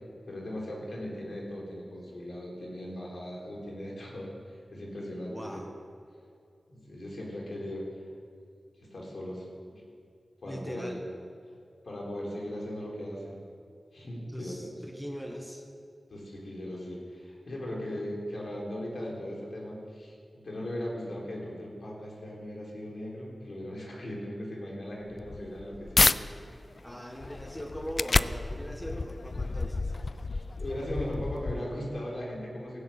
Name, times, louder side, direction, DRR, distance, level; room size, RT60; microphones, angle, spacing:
voice 1, 0.3-5.6 6.7-7.8 8.9-9.8 10.4-11.0 11.8-13.4 13.9-14.7 16.1-26.1 30.3-32.8, left 1 dB, 75° left, -3 dB, 4.0 m, -38 dB
voice 2, 5.3-5.7 10.4-11.0 14.3-15.6 26.8-29.9, equal, 5° left, 2 dB, 1.5 m, -40 dB
sound 1, 25.0-26.2 26.7-32.0, left 3 dB, 55° left, 0.4 m, -30 dB
16.0 x 6.8 x 8.8 m, 2.4 s
cardioid pair, 55°, 0 cm